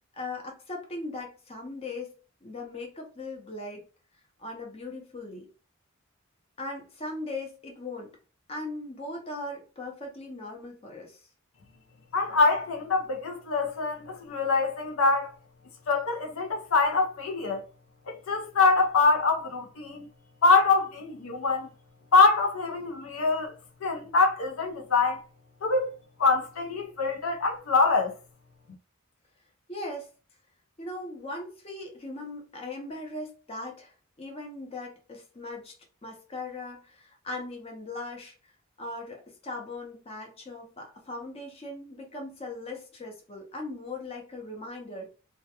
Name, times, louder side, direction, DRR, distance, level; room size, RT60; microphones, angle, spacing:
voice 1, 0.1-2.1 2.4-3.8 4.4-5.5 6.6-8.1 8.5-11.3 29.7-30.1 30.8-35.7 36.0-38.5 38.8-45.1, left 2 dB, 30° left, 0.6 m, -39 dB
voice 2, 12.1-15.3 15.9-17.6 18.1-20.1 20.4-21.7 22.1-23.5 23.8-25.2 25.6-25.9 26.2-28.1, left 3 dB, 75° left, 0.5 m, -24 dB
2.2 x 2.1 x 2.7 m
head